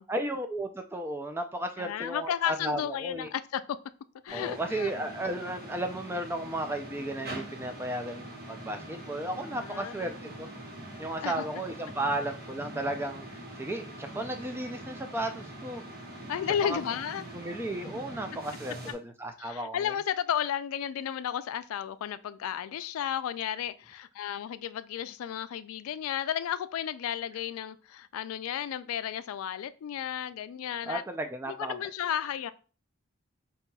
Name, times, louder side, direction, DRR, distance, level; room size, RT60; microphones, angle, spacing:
voice 1, 0.1-3.3 4.3-10.5 11.0-15.8 16.6-16.8 17.3-19.9 30.8-31.8, right 1 dB, 10° right, 0.3 m, -34 dB
voice 2, 1.8-3.8 4.2-4.9 9.5-10.1 11.2-11.4 16.3-17.2 19.4-31.0 31.5-32.5, left 9 dB, 85° left, 0.3 m, -33 dB
sound 1, 4.3-18.9, right 1 dB, 45° right, 1.0 m, -43 dB
5.4 x 2.8 x 2.3 m
head